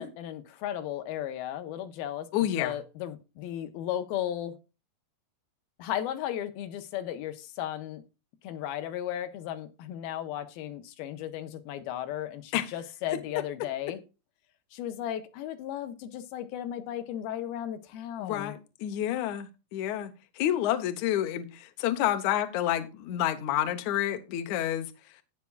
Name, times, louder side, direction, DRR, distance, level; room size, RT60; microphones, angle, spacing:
voice 1, 0.0-2.3 2.5-4.5 5.8-8.0 8.4-14.0 14.7-18.5, left 11 dB, 75° left, 2.5 m, -35 dB
voice 2, 2.3-2.8 12.5-12.7 18.2-24.9, left 12 dB, 90° left, 1.6 m, -29 dB
17.5 x 5.9 x 2.3 m
omnidirectional pair, 4.9 m